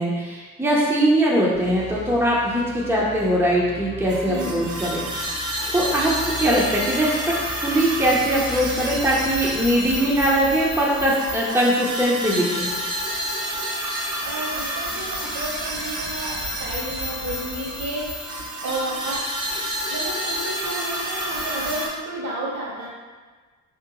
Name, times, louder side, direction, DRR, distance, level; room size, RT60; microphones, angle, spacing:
voice 1, 0.0-5.1 5.7-6.1 6.4-7.2 7.6-12.7, right 1 dB, 10° right, -5 dB, 0.7 m, -21 dB
sound 1, 1.5-10.6, left 2 dB, 35° left, 1.0 m, -40 dB
sound 2, 4.1-21.9, equal, 80° right, 1.2 m, -29 dB
voice 2, 4.2-4.7 14.2-18.2 18.6-19.3 19.9-22.9, right 1 dB, 60° right, -4 dB, 1.4 m, -32 dB
3.6 x 2.9 x 3.7 m, 1.4 s
cardioid pair, 90°, 30 cm